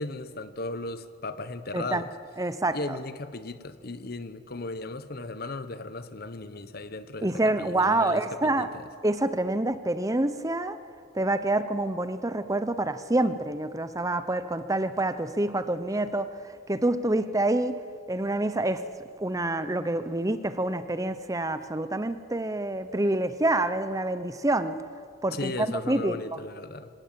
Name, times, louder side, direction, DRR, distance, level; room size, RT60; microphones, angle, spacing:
voice 1, 0.0-2.1 2.7-7.3 7.6-8.9 25.3-26.9, left 2 dB, 50° left, 12 dB, 1.0 m, -36 dB
voice 2, 2.4-3.0 7.2-8.7 9.0-10.8 11.1-17.8 18.1-18.8 19.2-24.8 25.2-26.2, right 2 dB, 15° right, 11 dB, 0.7 m, -27 dB
26.0 x 18.0 x 7.6 m, 2.2 s
head